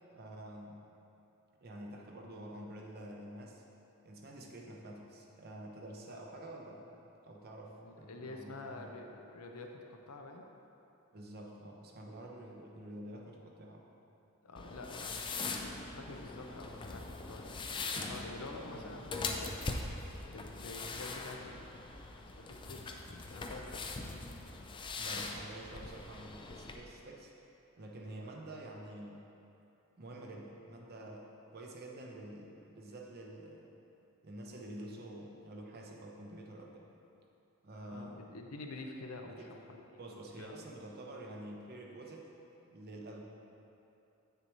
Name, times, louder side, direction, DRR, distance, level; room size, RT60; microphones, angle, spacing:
voice 1, 0.1-0.8 1.6-3.6 4.0-6.9 7.2-9.0 11.1-13.9 18.7-18.9 24.5-24.7 25.0-27.3 27.8-29.2 30.0-33.7 34.2-36.9 37.6-38.2 39.3-39.6 40.0-42.3 42.7-43.2, right 1 dB, 45° right, -1 dB, 0.8 m, -48 dB
voice 2, 7.8-10.5 14.4-17.6 17.9-19.6 20.3-21.8 22.3-23.8 37.9-40.0 40.4-40.6, left 2 dB, 80° left, 2 dB, 0.7 m, -48 dB
sound 1, 14.6-26.8, left 3 dB, 20° left, 0.4 m, -42 dB
8.2 x 6.8 x 3.1 m, 2.9 s
head